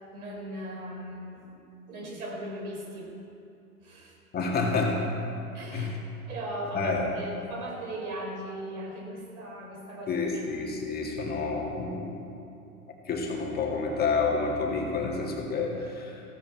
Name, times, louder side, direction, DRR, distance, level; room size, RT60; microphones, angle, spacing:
voice 1, 0.1-1.6 1.9-3.2 3.8-4.1 5.5-5.9 6.3-10.2, right 1 dB, 70° right, 0 dB, 3.8 m, -38 dB
voice 2, 4.3-5.0 5.7-6.0 6.7-7.2 10.1-12.3 13.1-16.2, left 4 dB, 20° left, -1 dB, 2.0 m, -29 dB
15.0 x 13.5 x 4.7 m, 2.7 s
hypercardioid pair, 110°, 44 cm